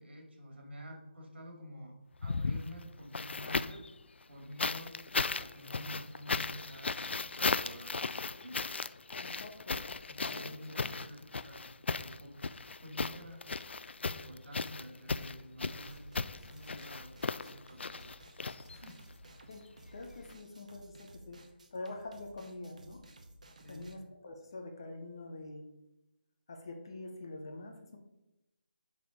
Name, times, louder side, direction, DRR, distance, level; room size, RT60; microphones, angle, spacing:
voice 1, 0.0-2.0 2.2-3.9 4.3-8.1 8.3-8.6 9.0-9.1 10.1-11.6 12.0-12.4 12.8-13.5 14.0-18.1 18.7-19.0 23.6-23.9, equal, 75° right, 1 dB, 2.5 m, -49 dB
sound 1, 2.1-3.9 4.6-19.1 20.2-20.3, left 4 dB, 90° left, 0.4 m, -36 dB
voice 2, 9.2-9.8 10.3-10.4 19.5-19.6 19.9-21.4 21.7-23.0 23.7-25.6 26.5-28.0, left 2 dB, 25° left, 3 dB, 0.7 m, -45 dB
sound 2, 15.6-23.9, right 1 dB, 40° right, 0.8 m, -56 dB
6.1 x 4.8 x 5.2 m, 0.92 s
hypercardioid pair, 180°, 6 cm